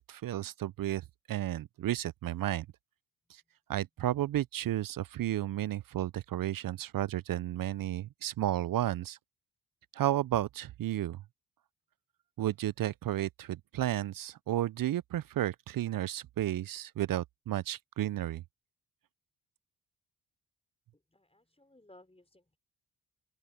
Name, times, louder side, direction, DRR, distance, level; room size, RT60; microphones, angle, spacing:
voice 1, 0.0-2.7 3.3-3.4 3.7-9.2 9.9-11.2 12.4-18.4, right 13 dB, 50° right, 0.5 m, -32 dB
voice 2, 20.9-22.6, left 1 dB, 15° left, 5.2 m, -60 dB
open air
supercardioid pair, 60°, 43 cm